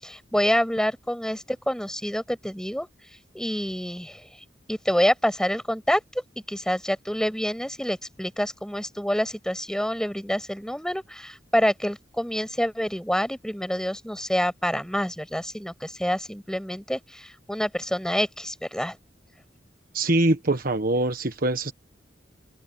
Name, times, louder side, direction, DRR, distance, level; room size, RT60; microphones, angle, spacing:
voice 1, 0.0-2.9 3.3-4.2 4.7-6.0 6.5-19.0, equal, 5° left, 7.3 m, -27 dB
voice 2, 19.9-21.7, right 2 dB, 50° right, 1.3 m, -23 dB
head